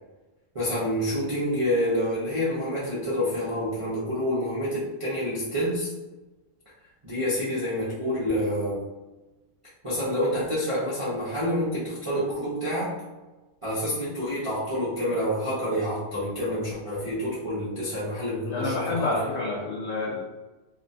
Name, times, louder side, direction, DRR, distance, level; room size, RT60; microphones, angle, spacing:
voice 1, 0.5-5.9 7.0-8.8 9.8-12.9 13.6-19.2, equal, 40° right, -10 dB, 0.4 m, -28 dB
voice 2, 18.5-20.2, left 3 dB, 75° left, -3 dB, 0.6 m, -28 dB
2.9 x 2.2 x 2.6 m, 1.1 s
omnidirectional pair, 1.7 m